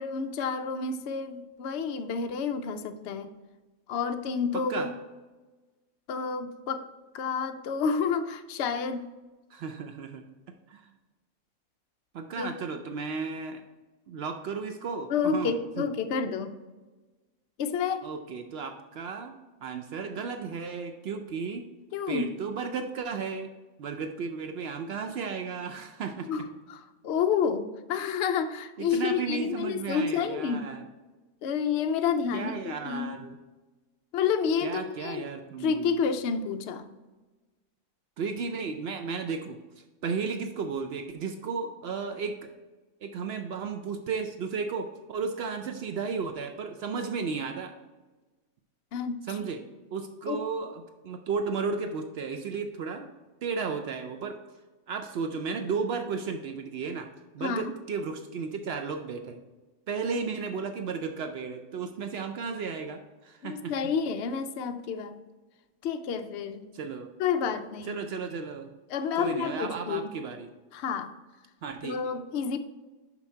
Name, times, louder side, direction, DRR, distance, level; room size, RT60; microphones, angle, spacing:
voice 1, 0.0-3.3 3.9-4.9 6.1-6.9 7.1-9.1 12.4-12.5 15.1-16.6 17.6-18.1 21.9-22.3 26.3-26.4 26.7-30.7 31.4-33.1 34.1-35.2 35.6-36.9 48.9-49.2 50.3-50.4 57.4-57.7 63.4-65.2 65.8-66.7 67.2-68.0 68.9-70.1 70.7-71.1 71.8-72.6, left 6 dB, 75° left, 8 dB, 0.6 m, -29 dB
voice 2, 4.5-4.9 9.5-10.2 10.7-10.8 12.1-13.6 14.1-15.8 18.0-19.3 19.6-21.7 22.1-23.5 23.8-26.5 28.8-30.8 32.3-33.4 34.6-36.1 38.2-39.6 40.0-42.5 43.0-47.7 49.3-49.6 49.9-53.1 53.4-54.4 54.9-57.1 57.3-59.4 59.9-63.9 66.7-67.1 67.9-68.7 69.1-70.5 71.6-72.0, right 5 dB, 80° right, 6 dB, 0.5 m, -34 dB
6.0 x 5.7 x 4.4 m, 1.2 s
omnidirectional pair, 1.7 m